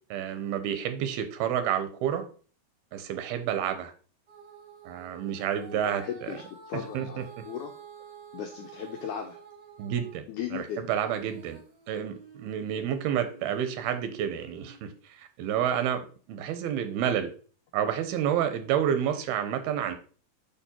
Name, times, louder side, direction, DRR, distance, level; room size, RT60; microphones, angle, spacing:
voice 1, 0.1-2.3 2.9-3.9 4.9-6.3 6.9-7.4 9.8-11.6 11.9-17.3 17.7-20.0, right 9 dB, 85° right, 10 dB, 2.8 m, -30 dB
Female singing, 4.3-10.2 10.6-14.9 15.5-15.6, right 5 dB, 60° right, 1.6 m, -50 dB
voice 2, 5.7-7.7 8.3-9.4 10.3-10.8, left 9 dB, 80° left, 3 dB, 1.7 m, -37 dB
7.0 x 5.4 x 4.4 m, 0.41 s
omnidirectional pair, 4.4 m